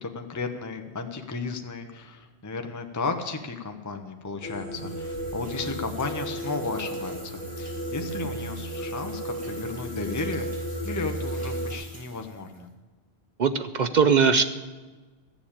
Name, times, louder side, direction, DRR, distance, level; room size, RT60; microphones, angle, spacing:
voice 1, 0.0-10.5 10.8-12.7, left 4 dB, 20° left, 6 dB, 0.8 m, -34 dB
sound 1, 4.4-11.7, right 1 dB, 35° right, 2.8 m, -34 dB
sound 2, 4.7-12.6, equal, 5° right, 3.0 m, -48 dB
voice 2, 13.4-14.4, right 6 dB, 50° right, 10 dB, 0.6 m, -20 dB
13.5 x 7.2 x 8.7 m, 1.3 s
omnidirectional pair, 1.1 m